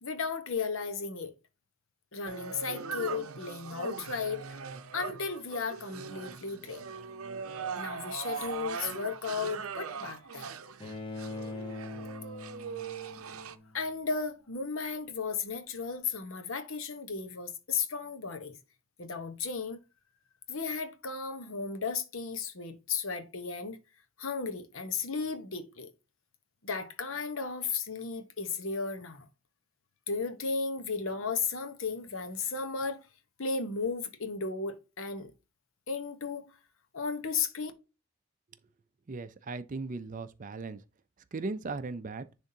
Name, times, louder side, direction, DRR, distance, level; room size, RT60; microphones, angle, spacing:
voice 1, 0.0-1.3 2.1-4.6 4.9-6.8 7.8-10.5 13.7-18.5 19.0-19.8 20.5-23.8 24.2-25.9 26.6-29.3 30.1-33.1 33.4-35.3 35.9-36.5 36.9-37.7, left 5 dB, 65° left, 1.0 m, -35 dB
sound 1, 2.3-13.6, right 6 dB, 80° right, 0.7 m, -40 dB
Bowed string instrument, 10.8-13.9, left 2 dB, 25° left, 0.8 m, -42 dB
voice 2, 39.1-40.8 41.3-42.3, right 3 dB, 35° right, 0.4 m, -37 dB
10.5 x 3.6 x 2.8 m
head